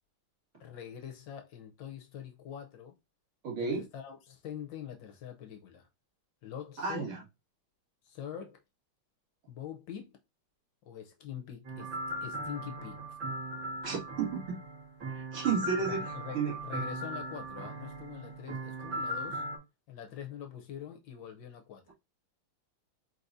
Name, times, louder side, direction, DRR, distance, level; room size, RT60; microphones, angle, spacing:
voice 1, 0.6-3.0 3.6-5.9 6.4-7.1 8.0-8.6 9.5-10.2 10.8-13.2 15.8-19.4 19.9-21.8, left 9 dB, 65° left, 1.3 m, -44 dB
voice 2, 3.4-3.8 6.8-7.2 13.8-14.6 15.1-16.5, right 6 dB, 80° right, 2.8 m, -32 dB
sound 1, 11.6-19.6, right 1 dB, 60° right, 2.5 m, -38 dB
4.7 x 4.0 x 2.6 m
omnidirectional pair, 2.4 m